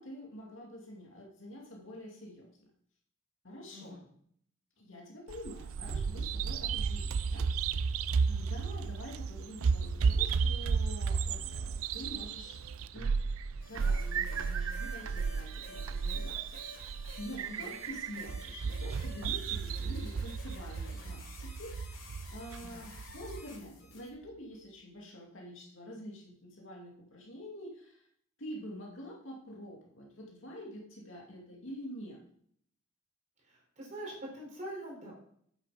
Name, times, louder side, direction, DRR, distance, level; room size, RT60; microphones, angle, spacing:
voice 1, 0.0-2.4 3.4-4.0 4.8-7.9 8.3-12.6 12.9-13.1 13.7-28.1 28.4-32.2, equal, 65° left, -2 dB, 2.5 m, -47 dB
voice 2, 3.7-4.0 17.4-17.8 22.6-22.9 33.4-35.1, right 1 dB, 35° right, -1 dB, 3.9 m, -44 dB
Bird vocalization bird call bird song, 5.3-23.4, right 5 dB, 80° right, 0.5 m, -33 dB
sound 1, 13.6-24.1, left 2 dB, 85° left, 3.6 m, -52 dB
9.0 x 8.2 x 5.1 m, 0.65 s
head